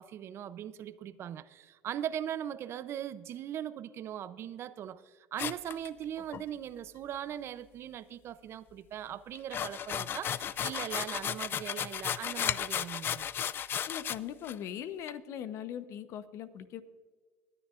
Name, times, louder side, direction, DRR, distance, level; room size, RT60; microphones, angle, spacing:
voice 1, 0.0-13.3, right 10 dB, 50° right, 0.6 m, -40 dB
sound 1, 5.4-6.4 9.3-14.2 14.4-14.5 15.1-15.2, left 9 dB, 40° left, 0.4 m, -34 dB
voice 2, 13.9-16.8, left 10 dB, 65° left, 0.8 m, -40 dB
19.5 x 9.8 x 2.5 m
cardioid pair, 110°, 5 cm